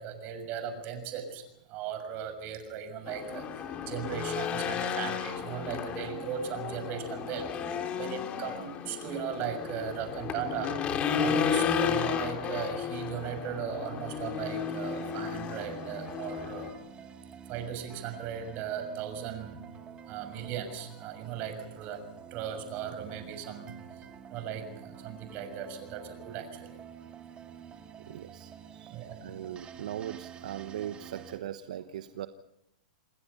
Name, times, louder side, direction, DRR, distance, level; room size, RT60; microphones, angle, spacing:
voice 1, 0.0-7.5 8.0-10.8 11.2-16.7 17.5-19.6 20.1-22.0 22.3-24.0 24.3-26.8 28.9-29.2 31.3-31.4, right 8 dB, 40° right, 8 dB, 6.5 m, -37 dB
Race car auto racing / Engine, 3.1-16.7, left 7 dB, 30° left, 3.2 m, -33 dB
sound 1, 14.5-31.4, right 8 dB, 25° right, 2.2 m, -49 dB
voice 2, 28.1-32.3, right 11 dB, 70° right, 10 dB, 1.1 m, -40 dB
28.5 x 21.0 x 5.8 m, 0.84 s
hypercardioid pair, 120°, 4 cm